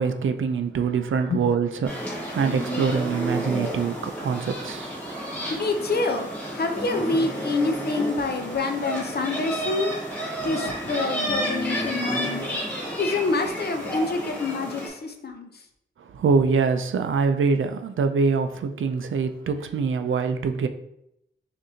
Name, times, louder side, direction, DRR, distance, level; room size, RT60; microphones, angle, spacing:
voice 1, 0.0-5.0 16.0-20.7, right 5 dB, 75° right, 0.4 m, -24 dB
sound 1, 1.8-14.9, equal, 5° left, 1.6 m, -31 dB
voice 2, 5.6-6.3 6.5-10.0 10.4-12.6 13.0-15.7, left 3 dB, 50° left, 0.6 m, -27 dB
6.3 x 2.6 x 2.7 m
wide cardioid pair, 120°, 21 cm